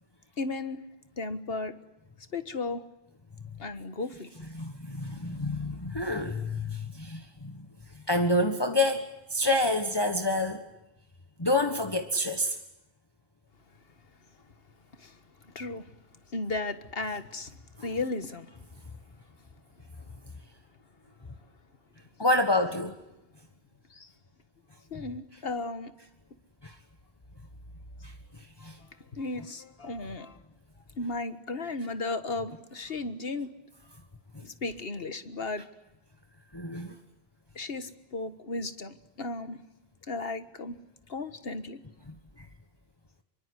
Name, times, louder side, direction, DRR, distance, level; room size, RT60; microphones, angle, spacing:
voice 1, 0.4-0.8 1.2-1.7 2.3-2.8 3.6-4.3 15.0-15.2 15.5-15.8 16.3-17.6 17.8-18.7 23.9-24.1 24.9-25.9 28.6-28.7 29.1-30.4 31.0-33.5 34.4-35.6 37.5-39.6 40.1-40.8 41.1-41.8, left 3 dB, 60° left, 1.8 m, -35 dB
voice 2, 4.5-7.5 8.1-10.6 11.4-12.6 22.2-22.9 26.6-26.7 28.6-28.7 36.5-36.9, left 1 dB, 25° left, 1.5 m, -27 dB
26.0 x 23.5 x 8.3 m
omnidirectional pair, 1.1 m